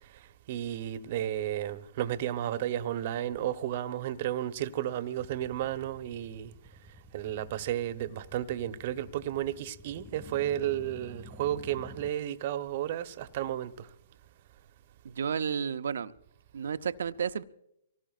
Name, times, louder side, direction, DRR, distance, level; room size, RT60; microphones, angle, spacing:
voice 1, 0.5-6.5 7.1-13.9, right 12 dB, 50° right, 1.0 m, -33 dB
sound 1, 4.9-12.1, left 2 dB, ahead, 0.7 m, -51 dB
voice 2, 15.0-16.1 16.5-17.4, right 7 dB, 70° right, 0.7 m, -32 dB
24.0 x 18.5 x 2.5 m
hypercardioid pair, 130°, 0 cm